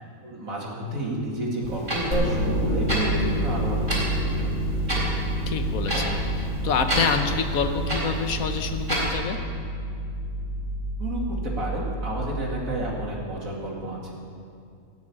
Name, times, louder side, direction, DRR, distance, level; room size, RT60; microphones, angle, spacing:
voice 1, 0.2-4.5 11.0-14.1, right 1 dB, 80° right, -3 dB, 2.9 m, -30 dB
Clock, 1.6-9.2, equal, 35° right, 4.0 m, -31 dB
sound 1, 2.1-13.1, right 1 dB, 30° left, 3.6 m, -29 dB
voice 2, 5.5-9.4, left 6 dB, 90° left, 8 dB, 1.4 m, -27 dB
16.5 x 6.7 x 8.6 m, 2.4 s
omnidirectional pair, 1.4 m